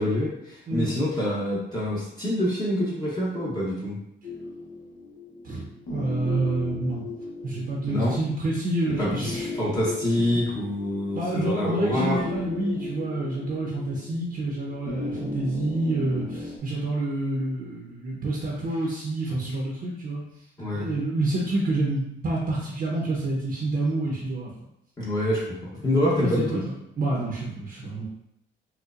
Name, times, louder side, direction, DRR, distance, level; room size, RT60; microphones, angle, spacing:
voice 1, 0.0-4.0 7.9-8.1 9.0-12.2 20.6-20.9 25.0-26.6, left 1 dB, 20° left, -7 dB, 0.9 m, -26 dB
voice 2, 0.7-1.0 5.4-5.6 5.9-7.1 7.4-9.5 11.1-20.2 20.7-24.5 26.2-28.1, right 2 dB, 50° right, -3 dB, 0.8 m, -28 dB
sound 1, 4.2-16.6, left 2 dB, 65° left, 0.9 m, -37 dB
4.4 x 2.2 x 2.5 m, 0.79 s
cardioid pair, 90°, 20 cm